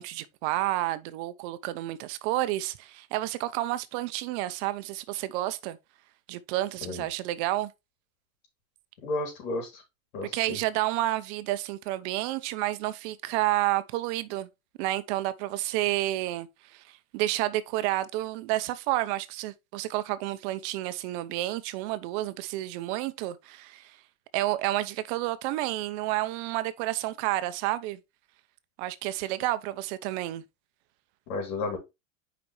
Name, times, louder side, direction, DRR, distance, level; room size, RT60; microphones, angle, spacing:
voice 1, 0.0-5.8 6.3-7.7 10.3-14.5 14.8-24.0 24.3-28.0 28.8-30.4, right 16 dB, 55° right, 0.8 m, -30 dB
voice 2, 9.0-9.8 10.1-10.6 31.3-31.8, left 2 dB, 75° left, 3.4 m, -32 dB
6.7 x 5.2 x 3.3 m
supercardioid pair, 130°, 42 cm